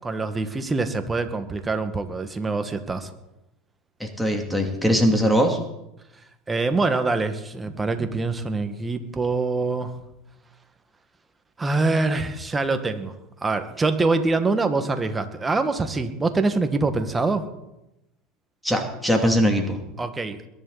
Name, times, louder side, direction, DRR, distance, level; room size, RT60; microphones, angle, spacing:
voice 1, 0.0-3.1 6.5-10.0 11.6-13.1 13.4-17.5 20.0-20.5, right 3 dB, 15° right, 8 dB, 1.8 m, -24 dB
voice 2, 4.0-5.6 18.6-19.8, equal, ahead, 3 dB, 2.6 m, -21 dB
22.0 x 11.0 x 4.1 m, 0.90 s
hypercardioid pair, 90°, 0 cm